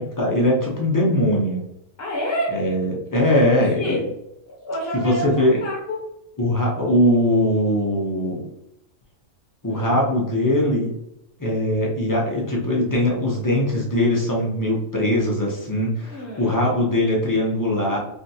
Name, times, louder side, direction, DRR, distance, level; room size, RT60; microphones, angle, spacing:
voice 1, 0.0-1.6 2.5-3.9 4.9-5.6 6.4-8.5 9.6-10.9 11.4-18.0, left 1 dB, 25° left, -3 dB, 0.4 m, -21 dB
voice 2, 2.0-2.6 3.3-4.0 4.6-6.0 9.7-10.0 15.9-16.8, equal, 55° left, -5 dB, 1.1 m, -29 dB
3.3 x 2.5 x 2.7 m, 0.83 s
omnidirectional pair, 1.3 m